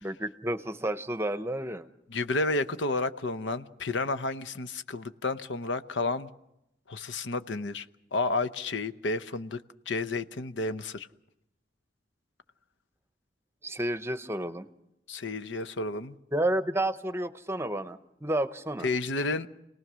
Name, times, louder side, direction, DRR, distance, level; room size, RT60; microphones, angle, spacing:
voice 1, 0.0-1.9 13.6-14.7 16.3-18.9, right 1 dB, 15° right, 11 dB, 0.8 m, -31 dB
voice 2, 2.1-6.3 6.9-11.1 15.1-16.1 18.8-19.5, left 3 dB, 85° left, 11 dB, 0.9 m, -31 dB
29.5 x 19.0 x 6.2 m, 0.85 s
head